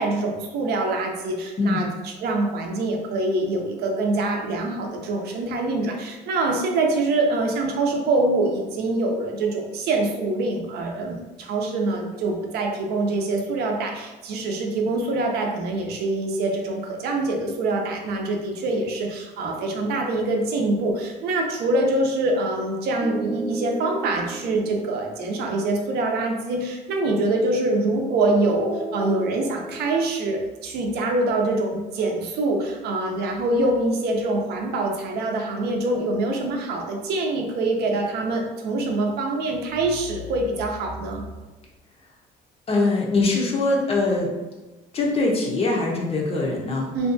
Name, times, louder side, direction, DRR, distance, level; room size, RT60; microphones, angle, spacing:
voice 1, 0.0-41.2 46.9-47.1, right 2 dB, 75° right, 2 dB, 0.5 m, -25 dB
voice 2, 1.6-1.9 42.7-44.3 44.9-46.9, left 3 dB, 35° left, -2 dB, 0.6 m, -22 dB
sound 1, 19.4-21.0 23.0-26.1 28.5-29.9, right 2 dB, 10° right, 0.5 m, -35 dB
2.5 x 2.2 x 2.5 m, 1.2 s
cardioid pair, 110°, 17 cm